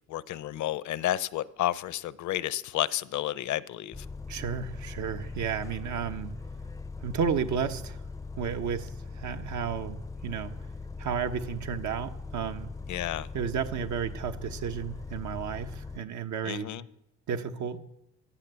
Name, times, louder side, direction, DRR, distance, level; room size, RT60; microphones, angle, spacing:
voice 1, 0.1-4.1 12.9-13.3 16.4-16.8, left 13 dB, 75° left, 0.7 m, -31 dB
Bus, 3.9-16.0, left 3 dB, 10° left, 0.5 m, -40 dB
voice 2, 4.3-6.3 7.0-8.0 8.3-10.5 11.0-12.8 13.3-16.7 17.3-17.8, right 7 dB, 75° right, 1.3 m, -32 dB
15.0 x 11.0 x 8.1 m
cardioid pair, 90°, 30 cm